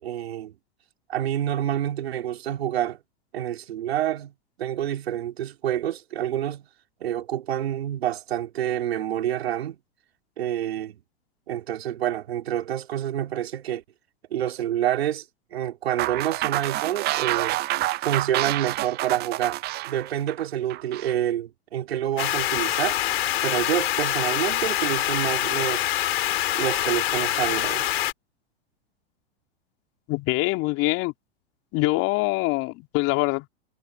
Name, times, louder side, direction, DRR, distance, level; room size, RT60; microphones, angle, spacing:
voice 1, 0.0-0.6 1.1-3.0 3.3-4.3 4.6-6.7 7.0-9.8 10.4-11.0 11.5-13.8 14.3-15.3 15.5-17.6 18.0-19.6 19.9-23.0 23.4-25.9 26.5-27.8, right 11 dB, 80° right, 3.9 m, -27 dB
sound 1, 16.0-21.1, right 17 dB, 30° right, 0.6 m, -28 dB
sound 2, 22.2-28.1, left 14 dB, 70° left, 3.9 m, -25 dB
voice 2, 30.1-31.1 31.7-33.5, left 23 dB, 50° left, 3.8 m, -24 dB
hypercardioid pair, 110°, 31 cm